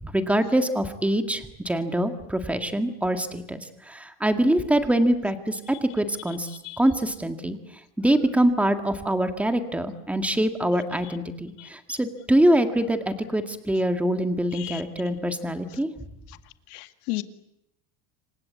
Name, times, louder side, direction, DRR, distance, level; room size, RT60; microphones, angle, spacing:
voice 1, 0.0-6.5 6.8-7.6 8.0-15.9, right 1 dB, 5° right, 7 dB, 1.9 m, -24 dB
voice 2, 16.7-17.2, left 22 dB, 80° left, 10 dB, 2.1 m, -33 dB
28.0 x 25.0 x 8.3 m, 0.81 s
cardioid pair, 160°, 44 cm